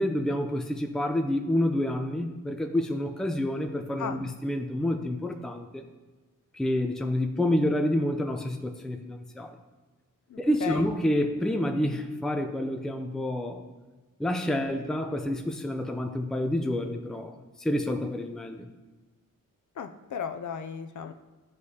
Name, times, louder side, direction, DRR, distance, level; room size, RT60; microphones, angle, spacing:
voice 1, 0.0-5.8 6.5-9.6 10.4-13.6 14.2-18.7, left 1 dB, ahead, 5 dB, 0.4 m, -28 dB
voice 2, 10.3-10.8 19.8-21.1, left 7 dB, 60° left, 7 dB, 0.5 m, -35 dB
12.5 x 4.8 x 2.8 m, 1.3 s
wide cardioid pair, 165°, 34 cm